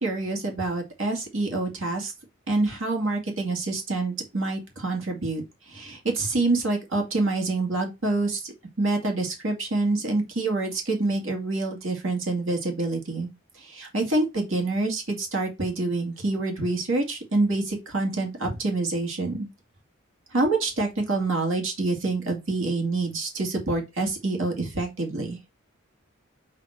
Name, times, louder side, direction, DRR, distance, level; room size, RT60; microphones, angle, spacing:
voice 1, 0.0-2.1 2.5-13.3 13.5-19.5 20.3-25.4, right 2 dB, 70° right, 2.3 m, -27 dB
7.5 x 3.0 x 4.4 m
head